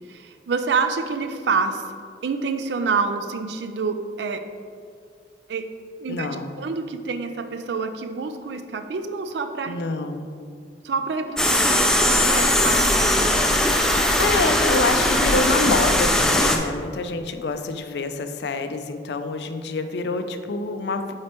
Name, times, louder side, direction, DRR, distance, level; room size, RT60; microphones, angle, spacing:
voice 1, 0.0-1.9 2.2-4.5 5.5-5.7 6.0-6.3 6.6-9.8 10.8-13.4, right 4 dB, 75° right, 9 dB, 0.4 m, -27 dB
voice 2, 6.1-6.5 9.7-10.3 14.2-21.1, left 3 dB, 70° left, 8 dB, 0.4 m, -26 dB
sound 1, 11.4-16.6, left 1 dB, 5° left, 0.3 m, -19 dB
7.5 x 4.3 x 3.0 m, 2.3 s
head